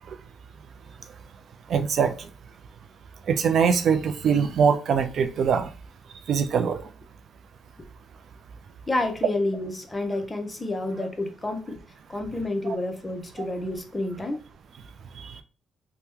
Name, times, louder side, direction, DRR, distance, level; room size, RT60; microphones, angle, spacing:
voice 1, 1.7-2.1 3.3-5.7 6.3-6.8 15.2-15.3, right 6 dB, 60° right, 0.4 m, -22 dB
voice 2, 8.9-11.8 12.1-14.4, left 2 dB, 20° left, 0.7 m, -29 dB
2.8 x 2.1 x 3.5 m
cardioid pair, 90°, 0 cm